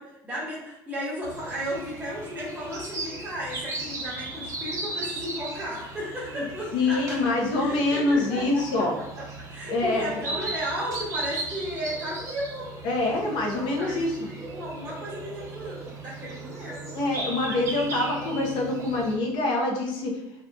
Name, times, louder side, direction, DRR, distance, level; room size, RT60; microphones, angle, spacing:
voice 1, 0.0-12.7 13.1-16.8 17.4-17.7, equal, 15° right, -7 dB, 0.9 m, -35 dB
sound 1, 1.2-19.2, right 2 dB, 40° right, 0.7 m, -37 dB
voice 2, 6.7-8.9 9.7-10.1 12.8-14.2 16.9-20.2, left 2 dB, 70° left, 0 dB, 0.7 m, -25 dB
2.7 x 2.5 x 2.2 m, 0.86 s
supercardioid pair, 105°, 8 cm